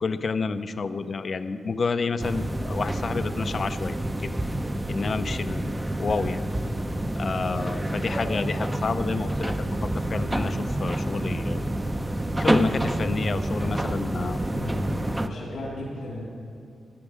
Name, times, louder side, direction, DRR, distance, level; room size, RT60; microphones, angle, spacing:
voice 1, 0.0-4.3 4.9-6.4 7.2-11.6 12.4-14.4, left 4 dB, 40° left, 10 dB, 0.5 m, -30 dB
sound 1, 2.2-15.3, right 1 dB, 10° right, 0.5 m, -28 dB
voice 2, 14.5-16.3, left 1 dB, 85° left, -6 dB, 3.2 m, -36 dB
16.0 x 11.5 x 5.0 m, 2.4 s
wide cardioid pair, 145°, 0 cm